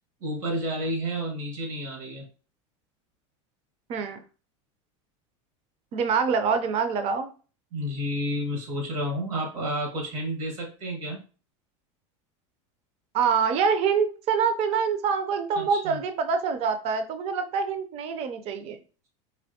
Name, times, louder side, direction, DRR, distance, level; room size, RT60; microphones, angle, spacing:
voice 1, 0.2-2.2 7.7-11.2 15.6-16.0, equal, 85° right, 0 dB, 1.7 m, -30 dB
voice 2, 5.9-7.3 13.1-18.8, right 6 dB, 40° right, 9 dB, 0.5 m, -25 dB
4.2 x 2.9 x 2.8 m, 0.36 s
supercardioid pair, 140°, 17 cm